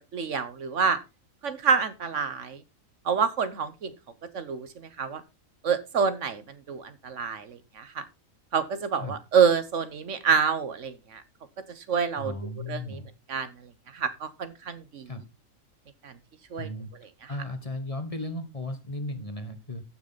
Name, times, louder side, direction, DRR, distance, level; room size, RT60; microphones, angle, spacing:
voice 1, 0.1-1.0 1.4-2.6 3.0-3.9 4.3-5.2 5.6-6.4 6.7-8.0 8.5-11.2 11.8-12.3 12.7-13.0 13.3-13.5 13.9-15.1 16.0-16.1 16.5-16.7, right 6 dB, 65° right, 13 dB, 1.3 m, -27 dB
voice 2, 12.2-13.1 15.1-15.2 16.6-16.9 17.3-19.8, left 1 dB, 25° left, 8 dB, 1.5 m, -35 dB
14.0 x 6.4 x 4.1 m, 0.26 s
omnidirectional pair, 1.4 m